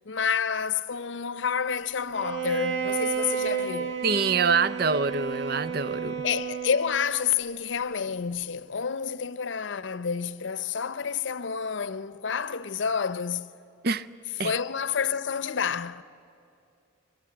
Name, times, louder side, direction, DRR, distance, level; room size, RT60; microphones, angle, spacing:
voice 1, 0.1-4.0 6.2-13.5 14.4-16.0, left 7 dB, 75° left, 0.6 m, -29 dB
Bowed string instrument, 2.1-7.2, right 7 dB, 70° right, 1.7 m, -31 dB
voice 2, 4.0-6.2 13.8-14.1 14.4-14.5, right 5 dB, 50° right, 0.6 m, -25 dB
24.0 x 19.0 x 10.0 m
head